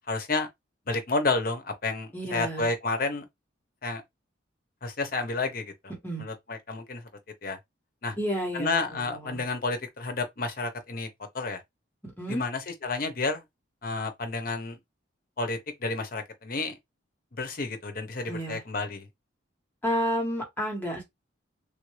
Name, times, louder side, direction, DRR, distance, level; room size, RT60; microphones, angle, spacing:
voice 1, 0.1-0.5 0.9-3.3 3.8-4.0 4.8-5.6 6.2-7.0 7.4-7.6 8.0-8.1 8.5-11.1 11.3-11.6 12.3-13.4 13.8-14.8 15.4-16.8 17.3-19.1, left 3 dB, 45° left, 0.7 m, -30 dB
voice 2, 2.1-2.7 5.9-6.2 8.2-9.4 12.0-12.4 18.3-18.6 19.8-21.0, equal, 10° left, 1.3 m, -31 dB
3.3 x 2.6 x 3.1 m
head